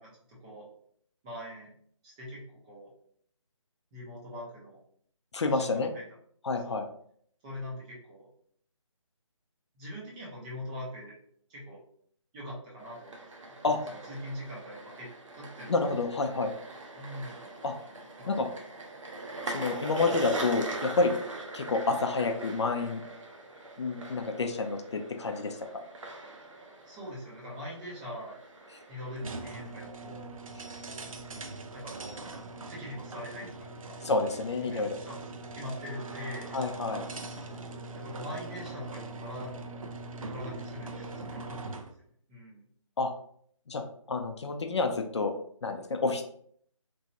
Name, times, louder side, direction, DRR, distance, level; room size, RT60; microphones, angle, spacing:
voice 1, 0.0-0.7 1.2-1.7 2.0-2.9 3.9-4.8 5.5-6.0 6.6-6.8 7.4-8.3 9.7-11.2 11.5-11.8 12.3-13.3 14.1-15.9 17.0-17.4 18.2-18.6 26.9-28.4 28.9-30.2 31.7-32.3 32.6-34.0 34.6-35.2 35.5-36.6 37.9-39.5 40.3-41.9 42.3-42.6, left 1 dB, 10° right, -5 dB, 0.5 m, -42 dB
voice 2, 5.3-5.9 6.4-6.8 13.6-13.8 15.7-16.5 17.6-17.7 18.3-18.5 19.5-21.1 21.5-23.0 23.8-25.6 34.0-34.9 36.5-37.1 43.0-43.1 43.7-43.8 44.1-45.3 45.6-46.2, left 3 dB, 60° left, 5 dB, 0.4 m, -29 dB
sound 1, 12.8-29.7, right 2 dB, 70° right, 0.8 m, -42 dB
sound 2, 29.2-42.0, right 3 dB, 85° right, 0.4 m, -42 dB
3.0 x 2.3 x 2.6 m, 0.63 s
figure-of-eight pair, 155°, 17 cm